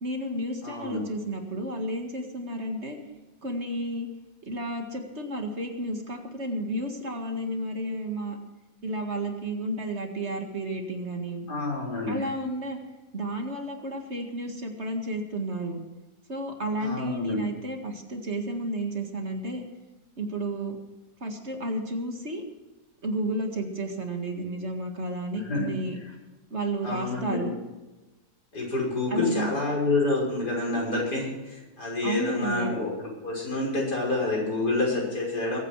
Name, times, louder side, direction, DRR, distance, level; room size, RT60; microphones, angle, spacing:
voice 1, 0.0-3.0 3.4-4.1 4.5-8.4 8.8-11.5 12.1-12.8 13.1-15.8 16.3-19.6 20.2-20.8 21.2-22.4 23.0-26.0 26.5-27.6 29.1-29.5 32.0-32.8, right 1 dB, 45° right, 3 dB, 2.2 m, -32 dB
voice 2, 0.6-1.0 11.5-12.3 16.8-17.5 25.4-25.7 26.0-26.1 26.8-27.4 28.5-35.6, left 2 dB, 85° left, -3 dB, 6.4 m, -28 dB
22.0 x 9.4 x 4.8 m, 1.1 s
omnidirectional pair, 1.7 m